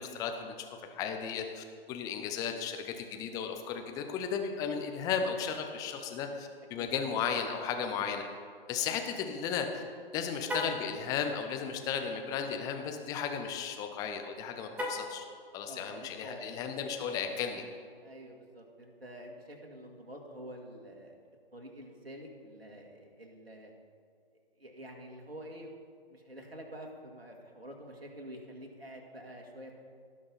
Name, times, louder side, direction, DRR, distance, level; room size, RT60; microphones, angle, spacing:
voice 1, 0.0-8.2 8.7-9.8 10.1-15.2 15.5-17.6, left 7 dB, 10° left, 5 dB, 0.6 m, -35 dB
voice 2, 6.8-7.1 15.7-16.4 17.1-17.3 18.0-21.2 21.5-23.7 24.6-25.7 26.1-29.8, equal, 85° right, 1 dB, 2.2 m, -48 dB
Car, 10.4-10.9 14.7-15.2, left 1 dB, 5° right, 1.2 m, -35 dB
18.0 x 6.1 x 4.1 m, 2.1 s
figure-of-eight pair, 130°, 29 cm